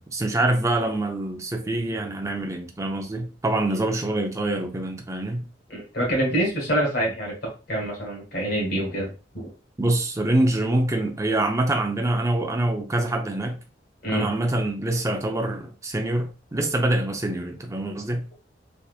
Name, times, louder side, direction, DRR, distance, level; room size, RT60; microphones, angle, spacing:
voice 1, 0.0-5.5 9.8-13.6 14.1-18.3, right 1 dB, 15° right, 0.5 m, -25 dB
voice 2, 5.7-7.3 7.7-9.5 14.0-14.3, right 1 dB, 60° left, 1.4 m, -26 dB
3.5 x 2.9 x 2.4 m
head